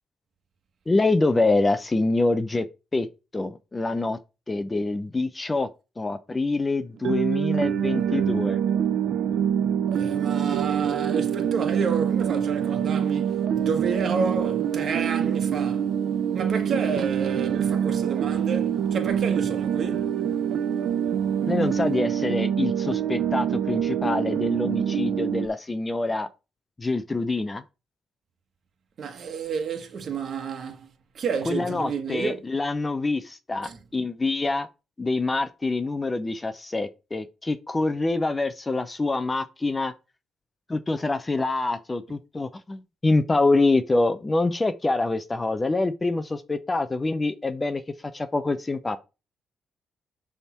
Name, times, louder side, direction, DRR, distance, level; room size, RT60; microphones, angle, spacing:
voice 1, 0.9-2.7 2.9-3.1 3.3-4.2 4.5-5.7 6.0-8.6 21.4-26.3 26.8-27.6 31.5-34.7 35.0-39.9 40.7-47.8 48.1-49.0, left 2 dB, 20° left, 0.7 m, -25 dB
sound 1, 7.0-25.5, right 8 dB, 70° right, 0.6 m, -25 dB
voice 2, 9.9-15.9 16.3-20.2 29.0-30.9 31.1-32.4 33.6-33.8, right 5 dB, 55° right, 1.5 m, -30 dB
7.0 x 3.6 x 5.8 m
cardioid pair, 90°, 0 cm